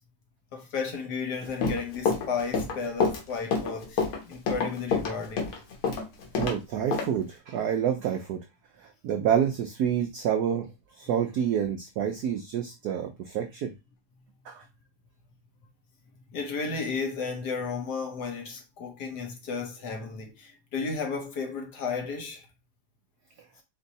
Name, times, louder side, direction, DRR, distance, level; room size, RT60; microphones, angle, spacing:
voice 1, 0.5-5.4 16.3-22.5, left 5 dB, 60° left, 1.3 m, -33 dB
Run, 1.4-6.6 6.9-7.1, left 4 dB, 75° left, 1.9 m, -27 dB
voice 2, 6.4-8.4 8.8-10.7 11.0-13.7 14.5-14.6, right 9 dB, 80° right, 0.8 m, -28 dB
4.4 x 2.6 x 4.0 m
omnidirectional pair, 2.3 m